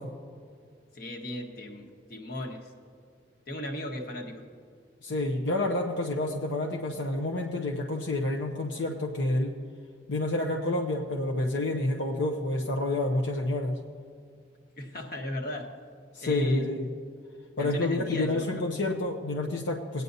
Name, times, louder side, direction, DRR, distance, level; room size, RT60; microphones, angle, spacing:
voice 1, 0.9-2.7 3.5-4.4 14.8-15.7 16.2-16.7 17.6-18.6, left 1 dB, 50° left, 1 dB, 1.3 m, -36 dB
voice 2, 5.0-9.5 10.1-13.8 16.1-16.8 17.6-20.0, left 2 dB, 75° left, 0 dB, 0.8 m, -29 dB
19.0 x 9.3 x 2.7 m, 2.2 s
head